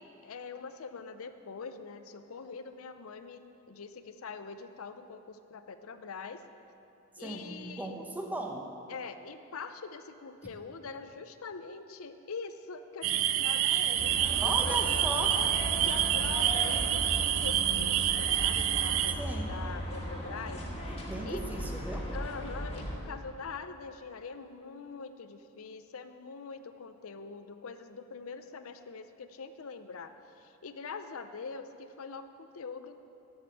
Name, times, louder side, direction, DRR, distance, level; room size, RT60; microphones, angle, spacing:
voice 1, 0.0-6.4 7.2-8.0 8.9-15.6 15.8-20.6 21.2-21.4 22.1-33.0, left 5 dB, 90° left, 10 dB, 0.6 m, -43 dB
voice 2, 7.2-8.7 14.4-15.4 19.2-19.5 20.9-22.1, right 1 dB, 10° right, 1 dB, 0.8 m, -37 dB
sound 1, 13.0-19.1, right 11 dB, 70° right, 0.4 m, -28 dB
sound 2, 14.0-23.0, equal, 30° left, 1.6 m, -37 dB
8.6 x 8.0 x 6.9 m, 2.8 s
head